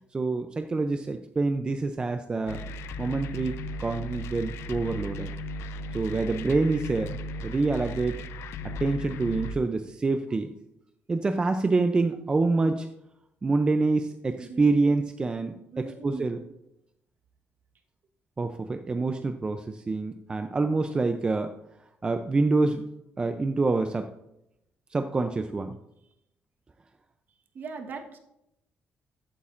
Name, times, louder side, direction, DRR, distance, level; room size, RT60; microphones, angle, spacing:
voice 1, 0.1-2.6 3.0-5.3 5.9-8.2 8.8-10.5 11.1-12.9 13.4-16.4 18.4-21.5 22.0-22.8 23.2-24.1 24.9-25.8, right 3 dB, 20° right, 7 dB, 0.4 m, -26 dB
sound 1, 2.5-9.6, left 1 dB, 80° left, 0.5 m, -36 dB
voice 2, 14.4-14.9 15.7-16.5 27.5-28.2, right 4 dB, 50° right, 4 dB, 1.2 m, -40 dB
14.0 x 8.6 x 2.5 m, 0.84 s
cardioid pair, 130°, 4 cm